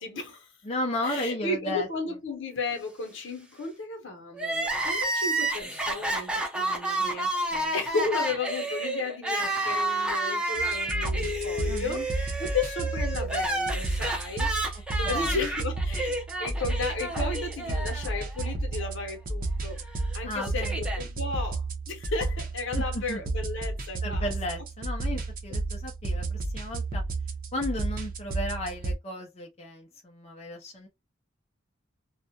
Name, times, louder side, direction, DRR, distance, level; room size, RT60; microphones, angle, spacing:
voice 1, 0.0-0.5 1.0-19.8 20.1-24.3, left 3 dB, 65° left, 0.9 m, -34 dB
voice 2, 0.6-1.9 7.0-7.2 7.5-7.7 11.7-12.1 15.0-15.5 20.2-20.7 22.7-23.2 24.0-27.0 27.5-30.9, left 1 dB, 30° left, 0.5 m, -34 dB
Crying sobbing, 4.3-18.5 18.8-18.9 19.9-21.0, right 1 dB, 5° right, 0.7 m, -30 dB
sound 1, 10.5-29.0, right 2 dB, 45° right, 0.6 m, -32 dB
2.3 x 2.1 x 2.7 m
head